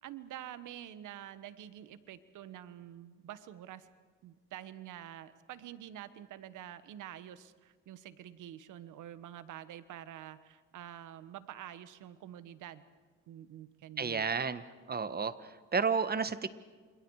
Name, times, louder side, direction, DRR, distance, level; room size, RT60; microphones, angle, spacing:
voice 1, 0.0-3.9 4.2-12.8 13.3-14.3, right 11 dB, 80° right, 13 dB, 1.3 m, -47 dB
voice 2, 14.0-14.6 14.9-16.5, right 5 dB, 30° right, 13 dB, 1.4 m, -32 dB
29.0 x 27.5 x 4.8 m, 1.5 s
cardioid pair, 90°, 30 cm